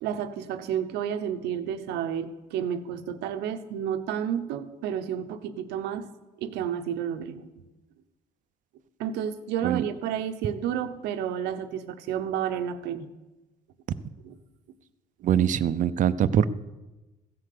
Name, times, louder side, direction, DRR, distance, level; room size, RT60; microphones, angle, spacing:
voice 1, 0.0-6.1 6.4-7.5 9.0-13.1 14.2-14.4, right 9 dB, 90° right, 8 dB, 1.0 m, -31 dB
voice 2, 15.2-16.5, right 9 dB, 50° right, 14 dB, 0.6 m, -23 dB
15.5 x 7.8 x 6.7 m, 1.1 s
cardioid pair, 110°, 17 cm